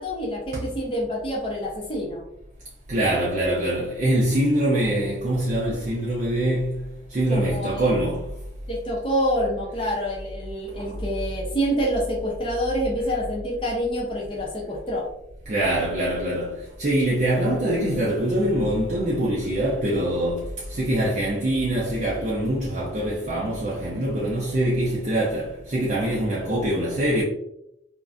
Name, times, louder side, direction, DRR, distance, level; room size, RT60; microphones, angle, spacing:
voice 1, 0.0-2.2 7.3-8.0 8.7-15.0, equal, 30° left, 0.6 m, -27 dB
voice 2, 2.9-8.3 10.8-10.9 15.5-27.2, right 1 dB, 45° right, 0.4 m, -24 dB
2.5 x 2.1 x 2.4 m
head